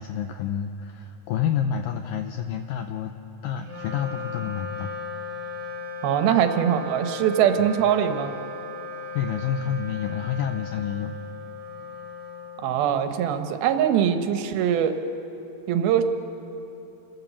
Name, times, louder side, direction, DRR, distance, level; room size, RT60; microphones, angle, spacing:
voice 1, 0.0-3.1 3.4-4.9 7.6-7.7 9.1-11.1, left 8 dB, 85° left, 6 dB, 1.9 m, -28 dB
Wind instrument woodwind instrument, 3.6-13.2, left 3 dB, 30° right, 3.4 m, -37 dB
voice 2, 6.0-8.3 12.6-15.0 15.7-16.0, right 9 dB, 75° right, 7 dB, 2.6 m, -22 dB
29.0 x 13.5 x 7.0 m, 2.9 s
omnidirectional pair, 4.7 m